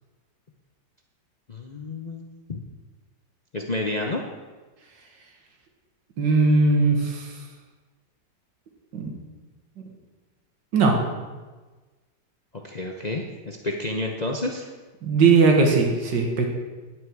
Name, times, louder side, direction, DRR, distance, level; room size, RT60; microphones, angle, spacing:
voice 1, 1.5-2.6 3.5-4.2 12.6-14.6, left 2 dB, 50° left, 1 dB, 0.5 m, -30 dB
voice 2, 6.2-7.2 8.9-9.1 10.7-11.0 15.0-16.5, right 4 dB, 85° right, 2 dB, 2.2 m, -19 dB
9.5 x 9.2 x 4.7 m, 1.3 s
omnidirectional pair, 1.9 m